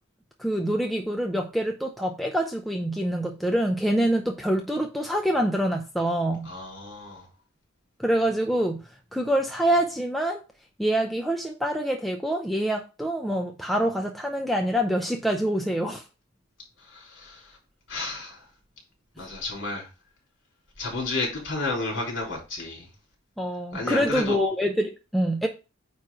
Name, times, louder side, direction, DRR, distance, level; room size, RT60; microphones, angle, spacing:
voice 1, 0.4-6.5 8.0-8.8 9.1-10.4 10.8-16.0 23.4-25.5, right 1 dB, ahead, 0.6 m, -25 dB
voice 2, 6.4-7.3 16.8-17.6 17.9-18.5 19.2-19.9 20.8-22.9 23.7-24.4, left 2 dB, 55° left, 3.6 m, -32 dB
9.0 x 3.2 x 4.8 m
head